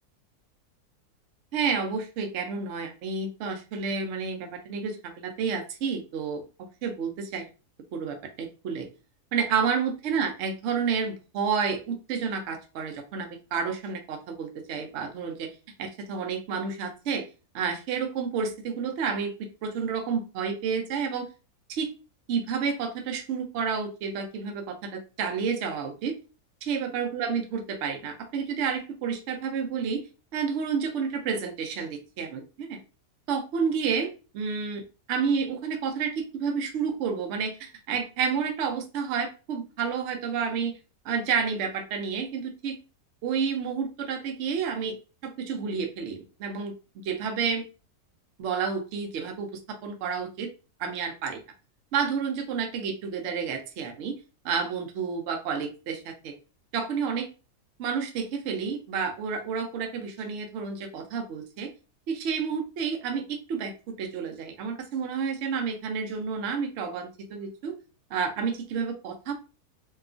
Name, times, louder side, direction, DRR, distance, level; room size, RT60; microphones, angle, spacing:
voice 1, 1.5-6.4 6.8-7.5 7.9-8.9 9.3-15.5 15.8-17.2 17.5-21.3 21.7-21.9 22.3-26.2 26.6-30.0 30.3-32.8 33.3-40.8 41.0-42.8 43.2-45.0 45.2-47.7 48.4-50.5 50.8-51.4 51.9-54.2 54.4-56.3 56.7-57.3 57.8-61.7 62.1-67.8 68.1-69.3, right 6 dB, 65° right, 4 dB, 0.7 m, -30 dB
2.8 x 2.3 x 2.4 m, 0.32 s
omnidirectional pair, 1.7 m